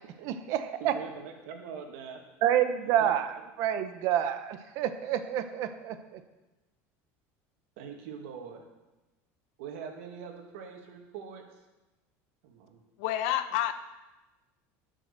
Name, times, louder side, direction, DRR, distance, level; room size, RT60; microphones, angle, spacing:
voice 1, 0.2-0.9 2.4-3.3 3.6-6.2, right 10 dB, 45° right, 9 dB, 0.9 m, -28 dB
voice 2, 0.8-2.2 2.8-3.1 7.8-8.6 9.6-11.5 12.4-12.8, right 6 dB, 80° right, 3 dB, 2.1 m, -43 dB
voice 3, 13.0-13.7, left 12 dB, 60° left, 11 dB, 0.8 m, -28 dB
14.0 x 6.4 x 6.7 m, 1.1 s
cardioid pair, 180°, 7 cm